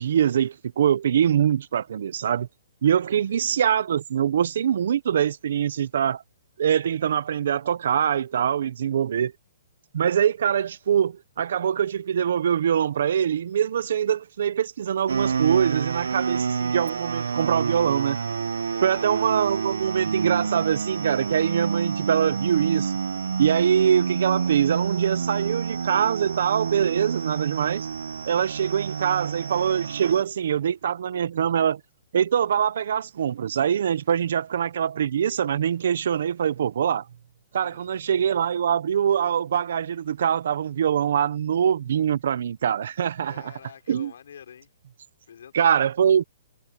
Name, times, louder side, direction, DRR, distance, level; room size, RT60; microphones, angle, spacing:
voice 1, 0.0-2.5 2.8-6.2 6.6-9.3 9.9-18.2 18.8-22.9 23.4-27.9 28.3-31.8 32.1-37.1 37.5-43.5 43.9-44.1 45.5-46.2, right 8 dB, 65° right, 0.9 m, -23 dB
sound 1, 15.1-30.2, right 6 dB, 90° right, 1.0 m, -28 dB
voice 2, 18.7-19.1 37.6-38.1 43.2-44.7 45.2-45.8, left 8 dB, 70° left, 5.9 m, -47 dB
hypercardioid pair, 160°, 0 cm